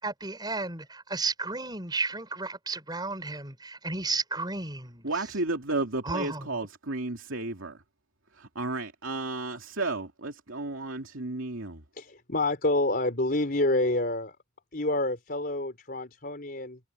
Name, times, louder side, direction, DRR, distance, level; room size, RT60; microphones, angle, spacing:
voice 1, 0.0-5.1 6.0-6.6, right 3 dB, 20° right, 6.2 m, -33 dB
voice 2, 5.0-7.8 8.3-11.8, right 2 dB, 70° right, 2.6 m, -33 dB
voice 3, 12.0-14.3 14.7-16.8, left 2 dB, 45° left, 4.5 m, -28 dB
head